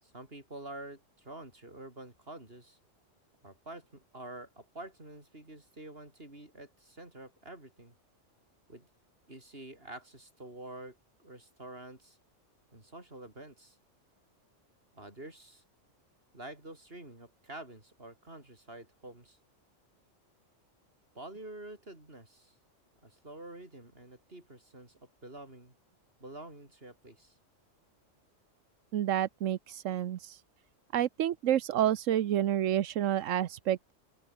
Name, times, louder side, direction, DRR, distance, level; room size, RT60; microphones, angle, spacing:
voice 1, 0.0-2.8 3.4-7.9 8.7-8.9 9.3-12.2 12.7-13.8 14.9-15.6 16.3-19.4 21.1-22.5 23.0-25.7 26.2-27.4, right 2 dB, 50° right, 5.8 m, -48 dB
voice 2, 28.9-30.4 30.9-33.9, right 11 dB, 85° right, 1.1 m, -29 dB
open air
omnidirectional pair, 1.3 m